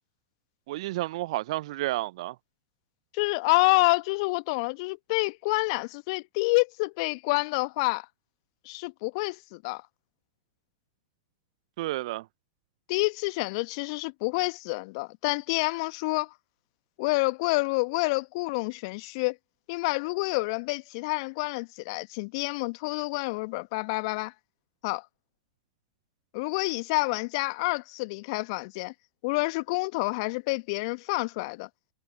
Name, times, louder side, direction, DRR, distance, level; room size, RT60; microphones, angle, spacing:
voice 1, 0.7-2.4 11.8-12.2, right 17 dB, 55° right, 0.6 m, -31 dB
voice 2, 3.1-8.0 8.6-9.8 12.9-16.3 17.0-19.3 19.7-24.3 24.8-25.0 26.3-28.9 29.2-31.7, left 26 dB, 50° left, 1.1 m, -28 dB
figure-of-eight pair, 95°, 4 cm